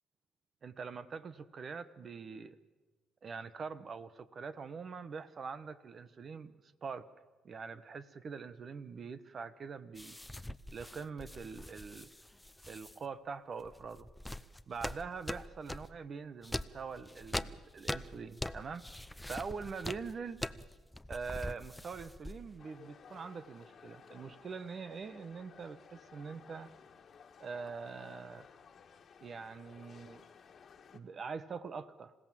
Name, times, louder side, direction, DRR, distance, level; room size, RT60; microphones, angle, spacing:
voice 1, 0.6-2.6 3.2-6.5 6.8-7.1 7.4-10.2 10.7-12.1 12.7-14.1 14.7-18.9 19.2-20.4 21.1-26.7 27.4-28.5 29.2-30.2 30.9-32.1, right 5 dB, 40° right, 14 dB, 1.2 m, -44 dB
sound 1, 9.9-13.0 13.6-15.9 16.4-22.6, left 1 dB, 5° left, 0.7 m, -43 dB
sound 2, 22.6-31.0, left 6 dB, 45° left, 1.8 m, -57 dB
26.5 x 16.5 x 7.6 m, 1.3 s
cardioid pair, 95°, 0 cm